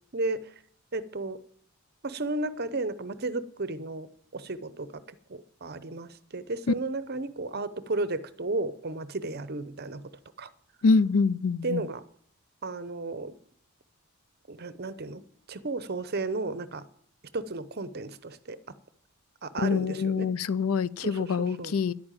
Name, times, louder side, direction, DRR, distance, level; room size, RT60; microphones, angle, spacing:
voice 1, 0.1-0.5 0.9-1.4 2.0-5.0 5.3-10.1 10.4-10.5 11.6-12.0 12.6-13.4 14.5-15.2 15.5-16.9 17.3-18.6 19.4-20.3 21.0-21.7, right 2 dB, 45° right, 0.8 m, -33 dB
voice 2, 10.8-11.8 19.6-21.9, left 4 dB, 75° left, 0.5 m, -25 dB
11.0 x 8.7 x 9.0 m
head